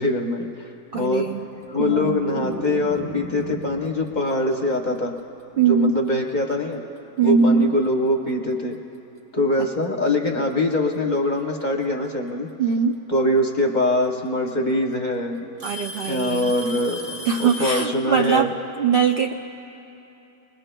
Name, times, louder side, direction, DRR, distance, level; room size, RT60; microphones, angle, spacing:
voice 1, 0.0-1.3 1.7-5.1 5.6-6.8 7.2-8.8 9.3-12.5 13.1-15.5 16.1-17.1 17.4-18.5, left 1 dB, 35° left, 2 dB, 0.8 m, -23 dB
voice 2, 0.9-1.4 1.8-2.3 5.6-6.0 7.2-7.6 12.6-13.0 15.6-16.6 17.2-18.5 18.8-19.3, right 6 dB, 80° right, 2 dB, 0.5 m, -21 dB
sound 1, 1.3-4.5 4.8-5.2, right 1 dB, 65° right, 3.1 m, -36 dB
Alarm / Tick-tock, 4.1-4.3 5.2-5.3 6.1-6.2 7.8-7.9 9.2-9.3 10.5-11.0 12.7-12.8 14.0-14.1 14.5-14.9 15.6-18.0, equal, 35° right, 2.4 m, -36 dB
26.5 x 21.0 x 2.2 m, 2.9 s
omnidirectional pair, 1.6 m